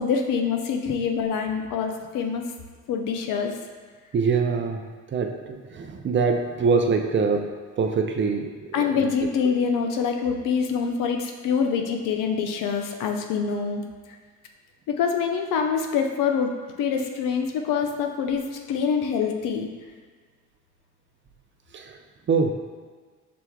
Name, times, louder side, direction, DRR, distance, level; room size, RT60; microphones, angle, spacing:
voice 1, 0.0-2.4 2.9-3.6 8.7-13.8 14.9-16.5 16.8-19.7, left 6 dB, 85° left, 4 dB, 0.5 m, -25 dB
voice 2, 4.1-4.8 5.1-7.5 7.8-8.8 21.7-21.9 22.3-22.5, right 5 dB, 40° right, 4 dB, 0.5 m, -24 dB
5.9 x 3.4 x 2.3 m, 1.5 s
cardioid pair, 75°, 31 cm